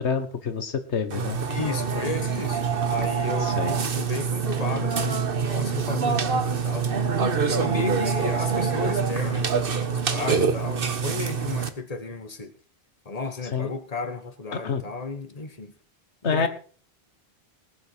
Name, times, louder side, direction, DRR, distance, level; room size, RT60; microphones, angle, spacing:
voice 1, 0.0-1.4 3.5-3.7 13.5-13.7 14.6-14.8 16.2-16.5, left 5 dB, 90° left, 1.6 m, -27 dB
Burping eructation, 1.1-11.7, right 6 dB, 55° right, 1.3 m, -25 dB
voice 2, 1.5-6.9 7.4-12.5 13.0-15.7 16.2-16.5, left 3 dB, 35° left, 1.6 m, -33 dB
19.5 x 8.0 x 4.6 m
omnidirectional pair, 1.1 m